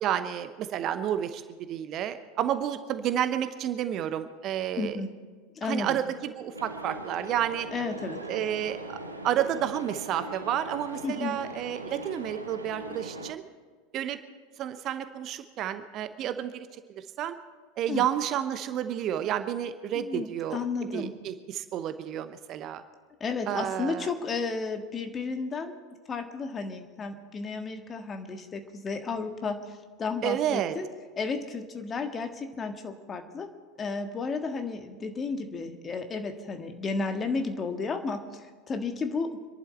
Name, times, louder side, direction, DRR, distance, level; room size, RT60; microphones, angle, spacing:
voice 1, 0.0-5.0 5.7-7.7 8.3-9.0 9.2-13.4 13.9-14.2 14.6-17.4 17.8-20.6 20.9-22.8 23.5-24.1 30.2-30.7, right 10 dB, 40° right, 11 dB, 0.8 m, -30 dB
voice 2, 4.8-5.1 5.6-6.0 7.7-8.2 11.0-11.4 17.9-18.0 19.9-21.1 23.2-25.8 26.1-30.9 31.2-33.5 33.8-39.4, left 4 dB, 25° left, 6 dB, 1.6 m, -33 dB
sound 1, 6.5-13.3, right 2 dB, 85° right, 1.0 m, -40 dB
26.5 x 11.5 x 4.3 m, 1.5 s
figure-of-eight pair, 80°, 0 cm